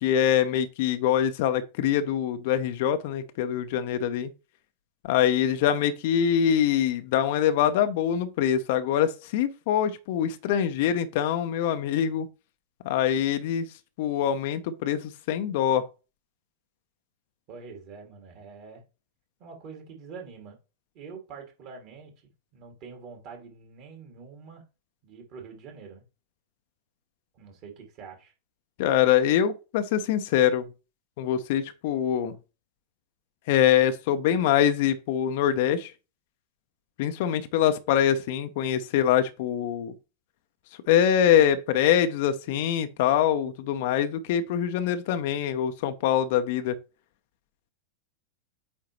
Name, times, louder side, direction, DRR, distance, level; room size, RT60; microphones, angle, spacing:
voice 1, 0.0-4.3 5.0-12.3 12.8-13.7 14.0-15.9 28.8-30.6 31.2-32.4 33.5-35.9 37.0-39.9 40.9-46.8, left 9 dB, 50° left, 0.7 m, -24 dB
voice 2, 17.5-18.8 19.4-20.6 20.9-22.1 22.5-24.6 25.0-26.0 27.3-28.3, right 5 dB, 40° right, 2.6 m, -45 dB
8.6 x 3.7 x 3.1 m
figure-of-eight pair, 90°, 0 cm